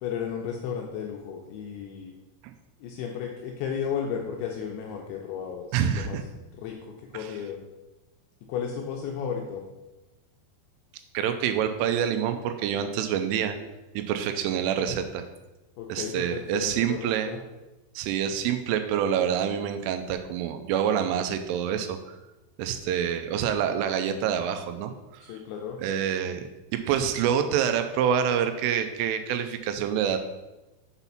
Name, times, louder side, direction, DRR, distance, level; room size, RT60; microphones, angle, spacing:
voice 1, 0.0-2.1 2.8-6.2 6.6-7.6 8.5-9.6 15.8-17.4 25.2-25.8, left 7 dB, 90° left, 1 dB, 2.6 m, -34 dB
voice 2, 5.7-6.2 7.1-7.3 11.1-13.6 13.9-15.2 15.9-17.3 18.0-22.2 22.6-25.4 25.8-26.4 26.7-30.2, right 8 dB, 85° right, 8 dB, 3.0 m, -27 dB
7.0 x 4.1 x 5.7 m, 1.0 s
omnidirectional pair, 5.8 m